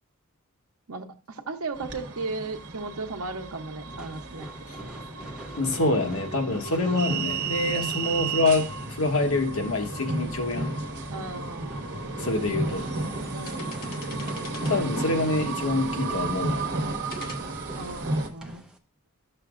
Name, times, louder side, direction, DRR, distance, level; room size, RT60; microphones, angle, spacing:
voice 1, 0.9-4.5 4.8-4.9 6.8-7.2 8.0-8.3 11.1-11.9 13.3-13.8 17.7-18.6, right 3 dB, 70° right, 0.8 m, -36 dB
sound 1, 1.8-18.3, right 3 dB, 50° right, 1.2 m, -33 dB
sound 2, 3.9-18.8, right 1 dB, 5° right, 0.7 m, -45 dB
voice 2, 5.6-10.8 12.2-12.9 14.7-16.6, left 2 dB, 65° left, 1.2 m, -26 dB
sound 3, 11.8-11.9 12.6-12.9 13.2-15.0 15.7-16.4 17.1-17.4, left 3 dB, 45° left, 1.1 m, -44 dB
11.5 x 6.7 x 2.5 m
head